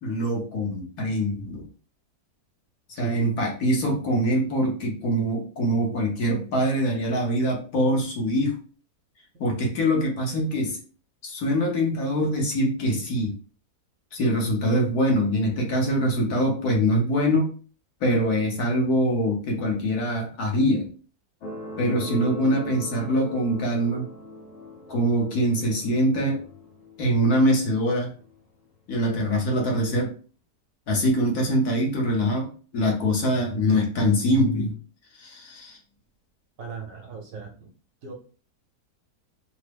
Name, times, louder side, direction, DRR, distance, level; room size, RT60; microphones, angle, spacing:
voice 1, 0.0-1.7 3.0-8.6 9.4-10.8 11.2-13.3 14.1-17.5 18.0-20.9 21.8-24.1 24.9-26.4 27.0-28.1 28.9-30.1 30.9-34.8 35.2-35.8, equal, 70° left, 0 dB, 1.4 m, -23 dB
sound 1, 21.4-28.5 29.3-29.4, left 1 dB, 55° left, 0.9 m, -40 dB
voice 2, 36.6-37.7 38.0-38.1, right 6 dB, 65° right, 1 dB, 1.1 m, -38 dB
3.5 x 2.0 x 3.3 m, 0.39 s
omnidirectional pair, 1.7 m